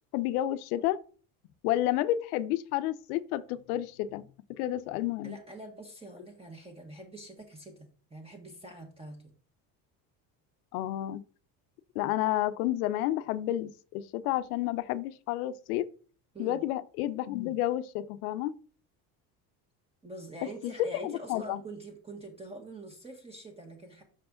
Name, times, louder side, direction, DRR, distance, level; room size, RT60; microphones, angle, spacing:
voice 1, 0.1-1.0 1.6-5.4 10.7-11.2 12.0-15.9 16.4-18.6 20.8-21.6, left 14 dB, 90° left, 0.6 m, -30 dB
voice 2, 5.2-9.3 16.3-16.6 20.0-24.0, right 2 dB, 15° right, 1.5 m, -45 dB
6.0 x 4.7 x 3.7 m
supercardioid pair, 90°, 44 cm